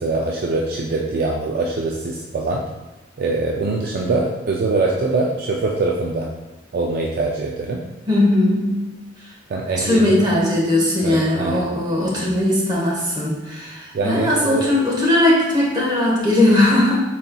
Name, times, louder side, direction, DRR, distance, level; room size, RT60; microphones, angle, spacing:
voice 1, 0.0-2.7 3.2-6.3 6.7-7.9 9.5-10.3 11.0-11.7 12.2-12.3 13.9-14.7, right 3 dB, 50° right, -1 dB, 0.3 m, -23 dB
voice 2, 8.1-8.8 9.8-17.0, left 1 dB, 20° right, -4 dB, 0.9 m, -18 dB
4.1 x 3.9 x 2.3 m, 1.1 s
head